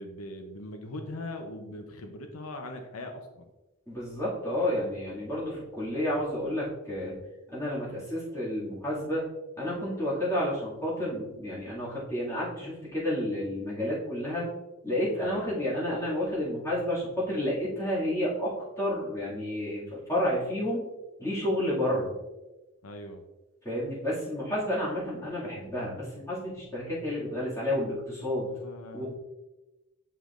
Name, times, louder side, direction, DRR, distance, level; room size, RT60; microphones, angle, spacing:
voice 1, 0.0-3.5 15.2-15.5 22.8-23.2 28.5-29.2, left 1 dB, 85° left, 5 dB, 0.7 m, -41 dB
voice 2, 3.9-7.2 7.5-9.3 9.6-14.5 14.8-20.9 21.2-22.1 23.6-28.5 28.9-29.2, left 1 dB, 15° left, -8 dB, 2.1 m, -30 dB
7.7 x 5.1 x 2.5 m, 1.1 s
head